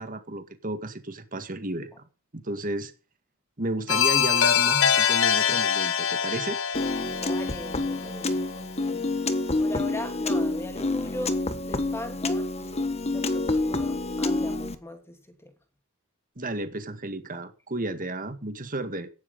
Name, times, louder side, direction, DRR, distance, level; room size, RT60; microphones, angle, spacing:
voice 1, 0.0-1.9 2.3-2.9 3.6-6.6 16.4-19.1, right 2 dB, 40° right, 2.0 m, -33 dB
sound 1, 3.9-8.6, left 8 dB, 60° left, 1.2 m, -24 dB
Piano, 6.7-14.8, left 2 dB, 30° left, 1.3 m, -28 dB
voice 2, 7.2-9.1 9.6-11.4 11.7-15.5, left 1 dB, 10° left, 2.9 m, -40 dB
15.0 x 11.0 x 5.4 m
head